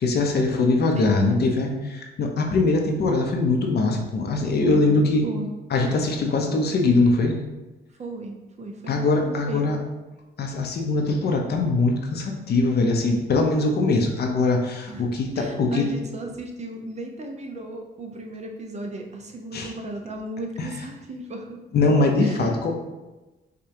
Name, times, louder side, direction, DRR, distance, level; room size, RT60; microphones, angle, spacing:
voice 1, 0.0-5.3 5.7-7.4 8.9-9.8 10.4-15.9 19.5-19.7 20.6-20.7 21.7-22.8, left 3 dB, 55° left, 2 dB, 0.7 m, -22 dB
voice 2, 0.9-1.4 4.6-5.5 7.9-9.6 14.9-15.0 15.3-21.6 22.2-22.6, right 2 dB, 35° right, 2 dB, 0.6 m, -35 dB
5.0 x 2.3 x 2.8 m, 1.1 s
cardioid pair, 90°, 20 cm